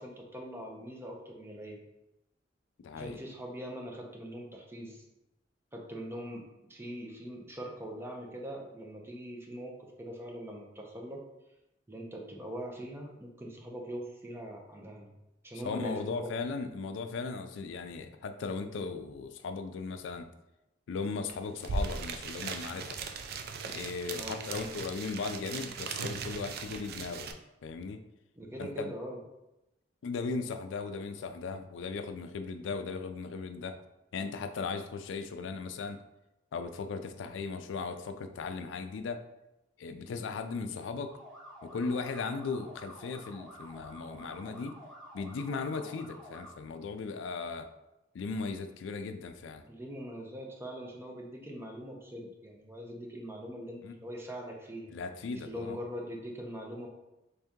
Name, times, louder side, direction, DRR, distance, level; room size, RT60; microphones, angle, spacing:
voice 1, 0.0-1.8 2.9-5.0 5.7-11.2 11.9-15.1 15.4-16.2 24.1-24.4 28.4-29.2 49.7-54.9 55.4-56.9, equal, 15° right, 0 dB, 0.6 m, -42 dB
voice 2, 2.8-3.2 15.6-20.3 20.9-23.0 23.7-27.3 27.6-28.0 28.6-28.9 30.0-33.8 34.1-36.0 36.5-39.2 39.8-41.1 41.6-44.8 45.1-47.7 48.1-49.6 53.8-53.9 54.9-55.8, left 4 dB, 80° left, 8 dB, 0.3 m, -37 dB
sound 1, 21.3-21.4 21.6-27.3, right 4 dB, 55° right, 0.3 m, -38 dB
sound 2, 41.1-46.5, equal, ahead, 1.2 m, -50 dB
3.5 x 2.8 x 3.5 m, 0.92 s
head